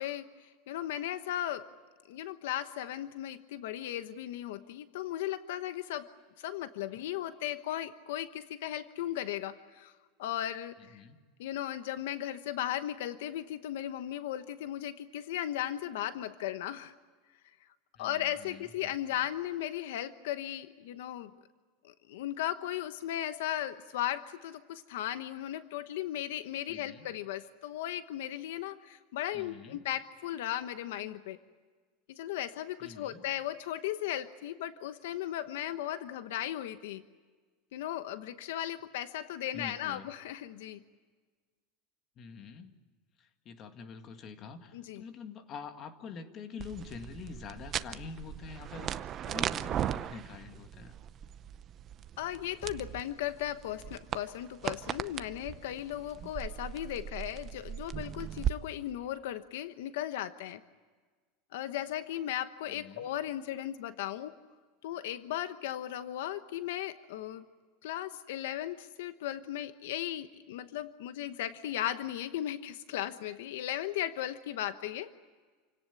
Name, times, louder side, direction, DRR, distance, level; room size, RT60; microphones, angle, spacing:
voice 1, 0.0-1.7 2.1-6.1 6.4-9.9 10.2-11.0 11.4-16.9 18.0-21.3 21.8-31.4 32.1-37.0 37.7-40.8 44.7-45.0 52.2-60.6 61.5-64.3 64.8-67.4 67.8-75.1, left 12 dB, 75° left, 11 dB, 1.0 m, -36 dB
voice 2, 10.8-11.2 18.0-18.9 26.7-27.1 29.3-29.8 32.8-33.2 39.5-40.1 42.2-42.8 43.2-50.9 62.7-63.1, left 6 dB, 30° left, 7 dB, 1.9 m, -46 dB
sound 1, 46.6-58.5, right 10 dB, 30° right, 0.7 m, -38 dB
28.5 x 18.0 x 9.7 m, 1.5 s
supercardioid pair, 160°, 0 cm